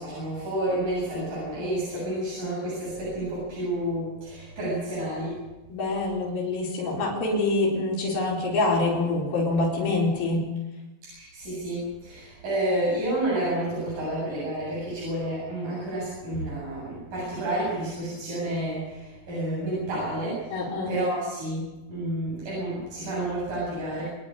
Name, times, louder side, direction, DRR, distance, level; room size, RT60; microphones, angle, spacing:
voice 1, 0.0-5.4 11.1-24.1, right 1 dB, 60° right, -7 dB, 9.7 m, -30 dB
voice 2, 5.7-10.4 20.5-20.9, left 2 dB, 75° left, -6 dB, 6.1 m, -25 dB
27.0 x 10.0 x 9.9 m, 1.1 s
omnidirectional pair, 4.2 m